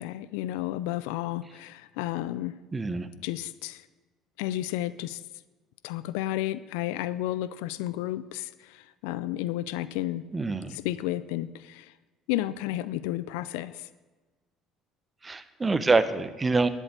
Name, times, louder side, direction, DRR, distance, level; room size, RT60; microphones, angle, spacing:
voice 1, 0.0-2.6 3.2-3.9 4.4-5.2 5.8-10.3 10.7-11.9 12.3-13.9, left 14 dB, 75° left, 17 dB, 0.4 m, -32 dB
voice 2, 2.7-3.1 10.3-10.7 15.2-16.7, right 3 dB, 25° right, 12 dB, 1.1 m, -25 dB
12.0 x 7.5 x 8.2 m, 1.3 s
hypercardioid pair, 65°, 0 cm